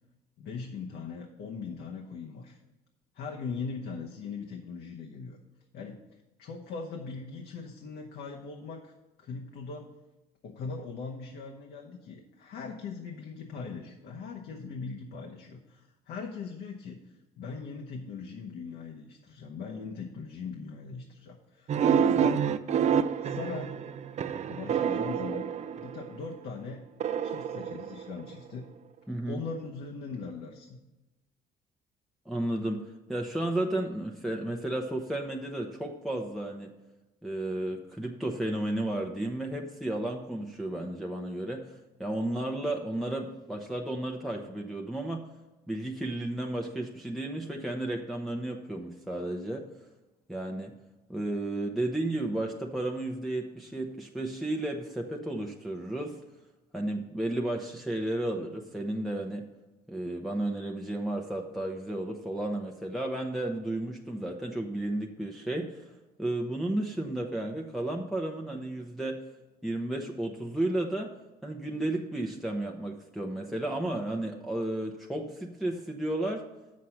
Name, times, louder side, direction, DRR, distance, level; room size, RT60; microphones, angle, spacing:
voice 1, 0.4-2.6 3.1-5.4 5.7-6.0 6.4-8.9 9.2-9.9 10.4-17.0 17.4-22.4 23.2-23.7 24.5-25.5 25.8-26.8 27.2-28.7 29.3-30.8, left 5 dB, 70° left, 0 dB, 0.9 m, -40 dB
sound 1, 21.7-26.2 27.0-28.5, right 7 dB, 40° right, 0.5 m, -28 dB
voice 2, 29.1-29.4 32.3-32.8 33.1-36.7 37.2-45.2 45.7-49.6 50.3-50.7 51.1-56.2 56.7-59.5 59.9-65.9 66.2-69.2 69.6-71.1 71.4-76.4, right 1 dB, ahead, 0 dB, 0.7 m, -33 dB
7.4 x 6.3 x 5.7 m, 1.1 s
cardioid pair, 110°, 17 cm